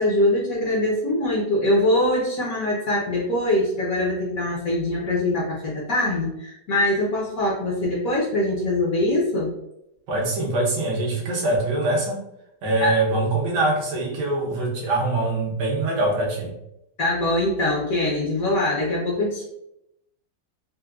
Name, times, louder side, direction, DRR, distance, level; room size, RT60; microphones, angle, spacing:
voice 1, 0.0-9.5 12.8-13.0 17.0-19.4, left 1 dB, 60° left, -4 dB, 1.0 m, -23 dB
voice 2, 10.1-12.2 12.6-16.5, right 2 dB, 75° right, -3 dB, 1.5 m, -23 dB
4.5 x 2.1 x 2.3 m, 0.83 s
omnidirectional pair, 1.9 m